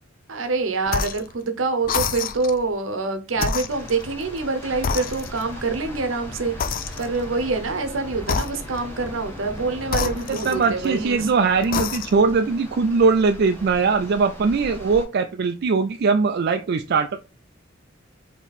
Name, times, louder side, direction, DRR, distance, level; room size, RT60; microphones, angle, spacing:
voice 1, 0.3-6.5 7.0-11.3, right 3 dB, 75° right, 0.8 m, -26 dB
sound 1, 0.9-1.3 1.8-2.6 3.3-4.5 4.8-5.6 6.6-7.3 8.2-9.0 9.9-11.0 11.6-12.3, left 6 dB, 45° left, 0.4 m, -28 dB
sound 2, 3.7-15.1, equal, 10° left, 1.2 m, -39 dB
voice 2, 10.3-17.2, right 4 dB, 55° right, 0.4 m, -21 dB
4.2 x 3.0 x 4.1 m
head